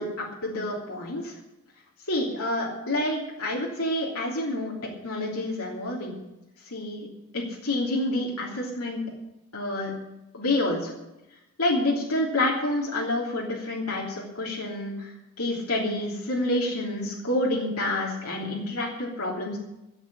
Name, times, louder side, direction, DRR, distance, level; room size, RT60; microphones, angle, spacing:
voice 1, 0.0-1.4 2.1-4.7 5.0-6.2 6.7-7.1 7.3-9.0 9.5-9.9 10.3-10.9 11.6-19.6, left 1 dB, 85° left, -2 dB, 3.1 m, -28 dB
13.5 x 7.6 x 9.9 m, 0.94 s
head